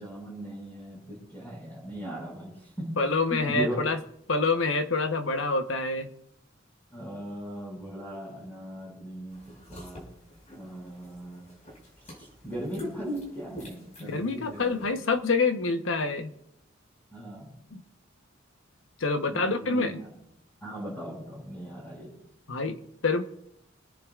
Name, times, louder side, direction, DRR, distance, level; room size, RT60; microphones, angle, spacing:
voice 1, 0.0-3.8 6.9-10.0 10.5-11.4 12.0-15.0 17.1-17.5 19.3-20.1 20.6-22.1, right 1 dB, 10° left, -7 dB, 5.8 m, -38 dB
voice 2, 3.0-4.0 4.3-6.1 14.0-16.3 17.7-17.8 19.0-19.9 22.5-23.2, left 3 dB, 80° left, 8 dB, 1.0 m, -27 dB
sound 1, 9.3-14.9, equal, 40° left, 5.4 m, -49 dB
26.0 x 10.5 x 2.5 m, 0.76 s
head